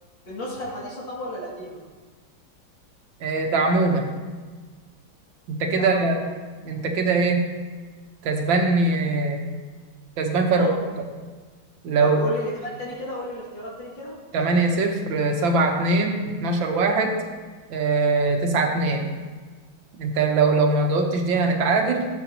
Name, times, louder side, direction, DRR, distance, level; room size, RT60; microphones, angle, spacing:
voice 1, 0.3-1.8 5.7-6.3 10.4-10.7 12.0-14.2, equal, 70° left, -5 dB, 3.0 m, -33 dB
voice 2, 3.2-4.1 5.5-6.2 6.7-7.5 8.2-9.5 10.2-10.7 11.0-11.1 11.8-12.2 14.3-17.1 17.7-19.1 20.0-22.1, right 3 dB, 75° right, 3 dB, 1.8 m, -22 dB
15.0 x 7.6 x 2.9 m, 1.4 s
omnidirectional pair, 2.2 m